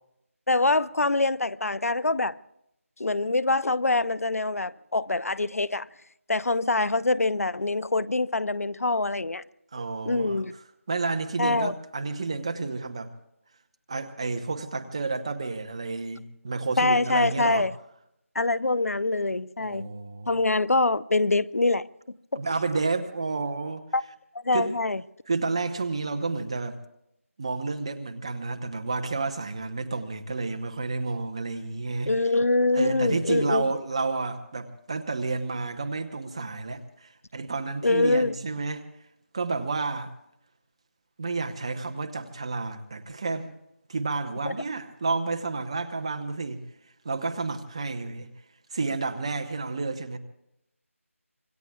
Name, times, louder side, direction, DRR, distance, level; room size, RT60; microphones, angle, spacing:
voice 1, 0.5-2.3 3.0-5.9 6.3-9.4 10.1-10.5 11.4-11.7 16.8-17.7 18.3-19.9 20.3-21.9 22.3-22.4 23.9-24.0 24.4-25.0 32.1-33.7 37.8-38.3 44.4-44.5, left 2 dB, 85° left, 0.7 m, -24 dB
voice 2, 9.7-10.4 10.9-13.1 13.9-17.7 19.6-20.3 22.3-23.8 24.5-24.7 25.3-26.8 27.4-32.1 32.8-38.8 39.3-40.1 41.2-43.5 43.9-46.6 47.0-48.3 48.7-50.2, right 3 dB, 25° right, 0.9 m, -30 dB
26.0 x 22.5 x 2.4 m
figure-of-eight pair, 175°, 8 cm